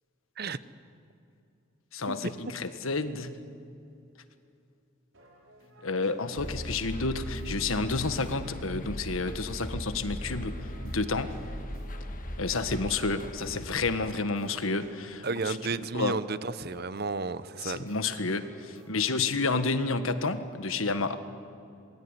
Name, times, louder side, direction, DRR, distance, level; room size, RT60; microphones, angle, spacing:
voice 1, 1.9-3.4 5.8-10.6 10.8-11.4 12.4-15.6 15.9-16.1 17.6-21.2, left 3 dB, 85° left, 10 dB, 1.6 m, -30 dB
sound 1, 5.1-19.2, equal, 75° right, 4.9 m, -55 dB
sound 2, 6.4-14.1, equal, 40° left, 1.7 m, -39 dB
voice 2, 15.2-17.8, right 4 dB, 50° right, 14 dB, 0.9 m, -32 dB
26.5 x 21.0 x 9.9 m, 2.6 s
head